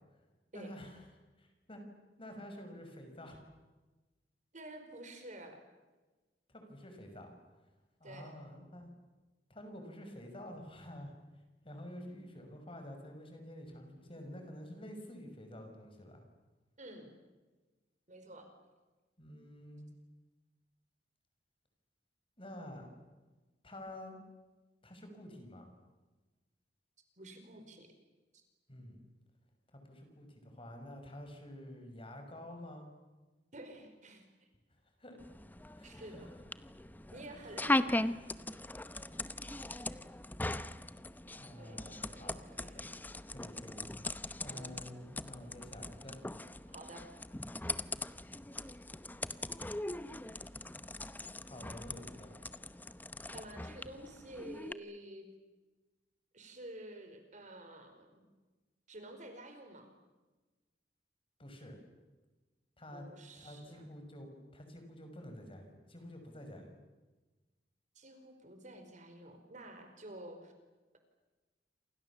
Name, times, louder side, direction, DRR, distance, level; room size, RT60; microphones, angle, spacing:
voice 1, 0.5-1.1 1.4-1.8 2.2-3.4 6.5-7.3 8.0-8.9 9.5-11.1 11.6-16.2 19.2-19.9 22.4-23.0 23.6-24.2 24.8-25.7 28.7-29.0 29.7-32.9 35.0-35.2 35.7-36.2 37.4-37.5 39.0-39.3 41.3-42.4 42.7-42.9 43.3-46.2 51.4-52.4 61.4-61.8 62.8-63.1 63.4-66.7, left 1 dB, 30° left, 5 dB, 5.9 m, -49 dB
voice 2, 4.5-5.6 8.0-8.3 16.8-17.1 18.1-18.5 27.2-27.9 28.3-28.4 33.5-34.2 35.8-36.3 37.1-38.1 41.6-42.9 44.5-44.8 46.7-47.1 53.3-55.3 56.3-58.2 58.9-59.9 62.9-63.9 67.9-70.5, right 1 dB, 45° right, 6 dB, 4.8 m, -50 dB
sound 1, 35.2-54.7, left 2 dB, 10° left, 0.8 m, -40 dB
28.5 x 26.5 x 7.3 m, 1.2 s
head